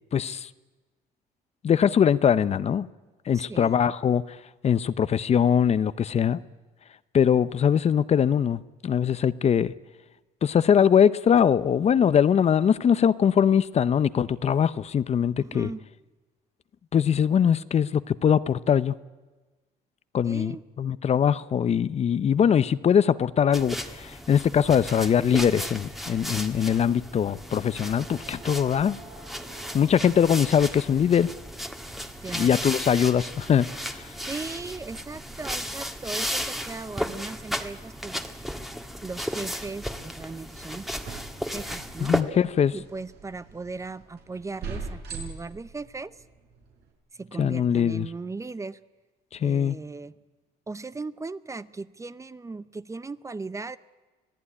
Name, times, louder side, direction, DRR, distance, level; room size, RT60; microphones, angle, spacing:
voice 1, 0.1-0.5 1.6-2.9 3.3-4.2 4.6-6.4 7.1-9.7 10.4-15.7 16.9-18.9 20.1-29.0 29.7-31.3 32.3-33.7 42.0-42.8 47.4-48.1 49.4-49.8, left 8 dB, 40° left, 0.7 m, -22 dB
voice 2, 3.3-3.8 15.4-15.8 20.2-20.6 32.2-32.6 34.2-38.2 39.0-40.9 41.5-42.2 42.7-46.1 47.1-48.8 49.4-50.2 50.7-53.8, right 3 dB, 20° right, 0.7 m, -37 dB
sound 1, 23.5-42.2, equal, ahead, 1.7 m, -34 dB
sound 2, 28.0-46.9, right 4 dB, 75° right, 5.4 m, -46 dB
25.5 x 17.0 x 9.8 m
cardioid pair, 110°, 17 cm